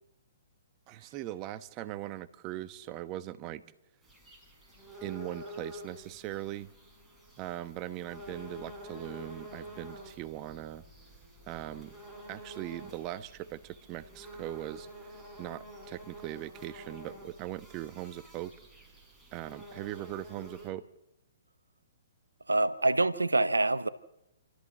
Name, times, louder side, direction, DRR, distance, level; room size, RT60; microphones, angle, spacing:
voice 1, 0.9-3.6 5.0-6.7 7.4-10.8 11.5-12.0 12.3-18.5 19.3-20.9, right 14 dB, 30° right, 1.0 m, -40 dB
sound 1, 4.0-20.7, equal, ahead, 5.4 m, -48 dB
voice 2, 22.5-23.9, right 2 dB, 90° right, 1.1 m, -26 dB
29.5 x 13.5 x 7.4 m
figure-of-eight pair, 125°, 0 cm